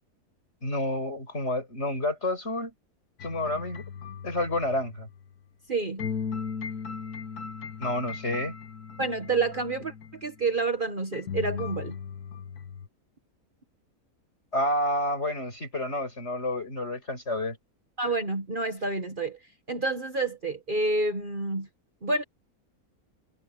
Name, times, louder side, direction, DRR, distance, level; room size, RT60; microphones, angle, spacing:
voice 1, 0.6-2.7 3.2-3.8 4.2-5.1 7.8-8.6 14.5-17.6, left 1 dB, 45° left, 7.0 m, -29 dB
sound 1, 3.2-5.4 6.0-10.3 11.1-12.9, left 6 dB, 85° left, 1.9 m, -37 dB
voice 2, 5.7-6.0 9.0-9.9 10.2-12.0 18.0-19.4 19.7-21.7 22.0-22.2, right 3 dB, 35° right, 1.4 m, -28 dB
omnidirectional pair, 1.6 m